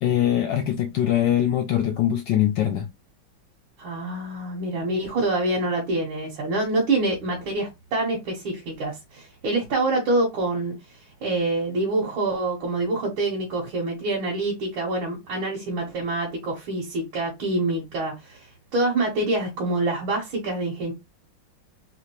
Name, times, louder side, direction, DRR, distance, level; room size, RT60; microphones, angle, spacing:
voice 1, 0.0-2.9, left 11 dB, 75° left, 1.1 m, -22 dB
voice 2, 3.8-20.9, right 2 dB, 85° right, 2.0 m, -26 dB
4.0 x 2.9 x 2.9 m
omnidirectional pair, 2.2 m